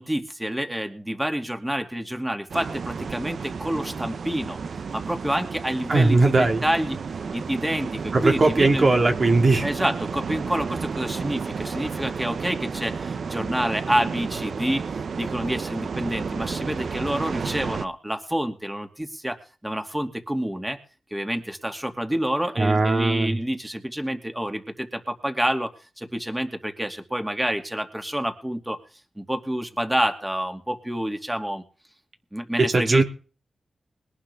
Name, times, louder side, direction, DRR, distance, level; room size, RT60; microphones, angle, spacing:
voice 1, 0.0-2.7 3.1-4.6 4.9-7.0 7.3-7.9 8.2-8.9 9.6-12.9 13.3-14.8 15.2-18.9 19.2-19.3 19.6-20.8 21.1-24.6 25.2-25.7 26.1-28.8 29.3-31.6 32.3-33.0, equal, 10° right, 2.6 m, -27 dB
sound 1, 2.5-17.9, right 5 dB, 70° right, 0.8 m, -32 dB
voice 2, 5.9-6.6 8.1-9.7 22.6-23.4 32.6-33.0, right 3 dB, 50° right, 2.2 m, -19 dB
21.5 x 11.5 x 3.6 m
cardioid pair, 60°, 0 cm